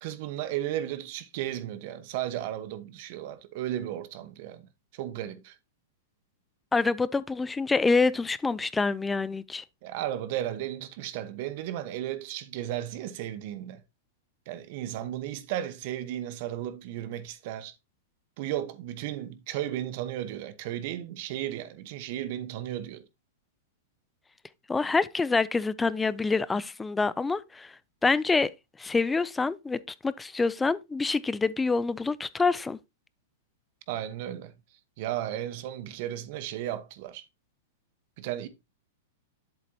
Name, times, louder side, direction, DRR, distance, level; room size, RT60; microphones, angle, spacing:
voice 1, 0.0-5.5 9.8-13.8 14.5-17.7 18.4-23.0 33.9-34.5 35.0-37.3 38.2-38.5, right 12 dB, 50° right, 1.0 m, -34 dB
voice 2, 6.7-9.6 24.7-27.7 28.0-28.5 28.8-32.8, left 4 dB, 10° left, 0.4 m, -26 dB
7.6 x 7.5 x 2.7 m
hypercardioid pair, 135°, 0 cm